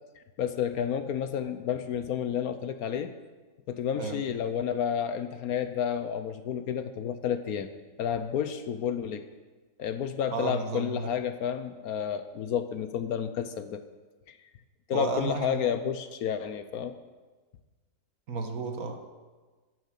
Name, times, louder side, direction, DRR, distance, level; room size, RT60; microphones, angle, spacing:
voice 1, 0.4-3.1 3.7-7.7 8.0-9.2 9.8-13.8 14.3-14.4 14.9-17.0, left 8 dB, 65° left, 10 dB, 1.1 m, -30 dB
voice 2, 10.3-11.1 14.9-15.7 18.3-19.0, right 4 dB, 60° right, 5 dB, 1.7 m, -33 dB
11.0 x 9.2 x 7.4 m, 1.3 s
omnidirectional pair, 1.8 m